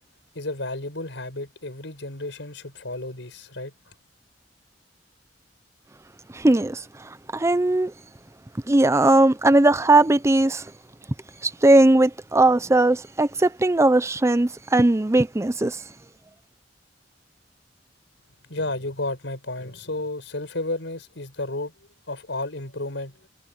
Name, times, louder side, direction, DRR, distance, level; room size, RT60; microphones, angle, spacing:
voice 1, 0.3-3.9 18.4-23.3, left 2 dB, 80° left, 5.6 m, -32 dB
voice 2, 6.3-7.9 8.7-10.7 11.4-15.8, right 2 dB, 15° right, 0.6 m, -19 dB
head